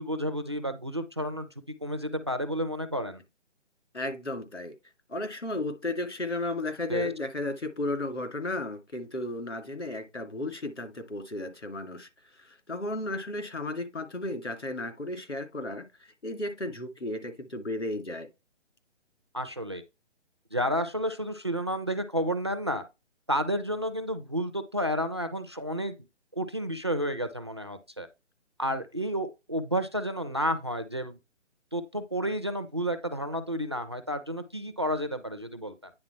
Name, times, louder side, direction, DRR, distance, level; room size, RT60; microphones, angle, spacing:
voice 1, 0.0-3.2 6.9-7.1 19.3-19.8 20.5-22.8 23.3-25.9 26.3-28.1 28.6-31.2 31.7-35.9, equal, 25° right, 0.4 m, -31 dB
voice 2, 3.9-4.7 5.1-12.1 12.4-18.3, left 2 dB, 75° left, 2.4 m, -34 dB
9.7 x 3.7 x 4.3 m
figure-of-eight pair, 140°, 35 cm